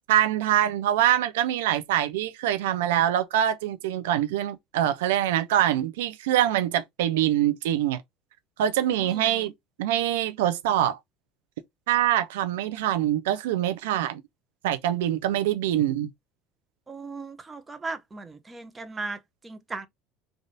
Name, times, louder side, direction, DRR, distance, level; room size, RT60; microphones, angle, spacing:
voice 1, 0.1-8.0 8.6-9.5 9.8-11.0 11.9-14.2 14.6-16.1, right 11 dB, 80° right, 0.5 m, -24 dB
voice 2, 9.0-9.5 16.9-19.9, right 3 dB, 20° right, 0.8 m, -37 dB
3.3 x 2.5 x 3.9 m
hypercardioid pair, 80°, 0 cm